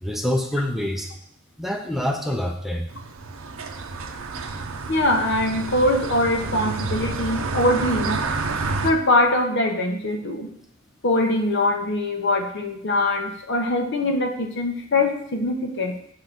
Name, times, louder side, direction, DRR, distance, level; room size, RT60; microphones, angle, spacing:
voice 1, 0.0-1.1 1.6-2.9, equal, ahead, 2 dB, 0.6 m, -26 dB
sound 1, 2.9-8.9, right 3 dB, 75° right, 0.7 m, -29 dB
voice 2, 4.9-8.2 8.8-10.5 11.0-16.0, left 1 dB, 60° left, 4 dB, 0.9 m, -22 dB
6.5 x 3.8 x 5.9 m, 0.66 s
head